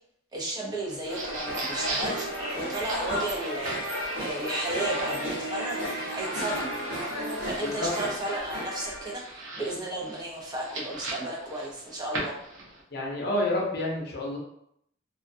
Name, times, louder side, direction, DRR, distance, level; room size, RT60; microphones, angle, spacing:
voice 1, 0.3-5.8 6.1-6.7 7.4-12.4, right 1 dB, 20° right, -3 dB, 0.6 m, -34 dB
sound 1, 0.8-12.8, right 2 dB, 90° right, 0.8 m, -40 dB
sound 2, 1.1-9.1, equal, 65° right, 1.1 m, -33 dB
voice 2, 12.9-14.4, left 1 dB, 55° left, -2 dB, 0.7 m, -29 dB
2.4 x 2.2 x 2.5 m, 0.72 s
head